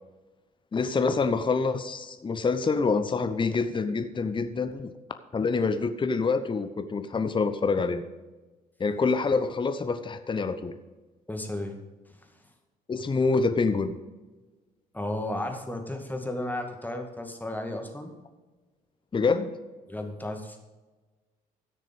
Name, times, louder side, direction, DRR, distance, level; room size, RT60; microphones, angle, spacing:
voice 1, 0.7-4.9 5.3-8.0 8.8-10.7 12.9-14.0 19.1-19.5, left 4 dB, 25° left, 10 dB, 0.9 m, -26 dB
voice 2, 11.3-11.8 14.9-18.1 19.9-20.6, left 1 dB, 10° left, 3 dB, 2.2 m, -33 dB
14.0 x 6.6 x 5.3 m, 1.2 s
hypercardioid pair, 50°, 19 cm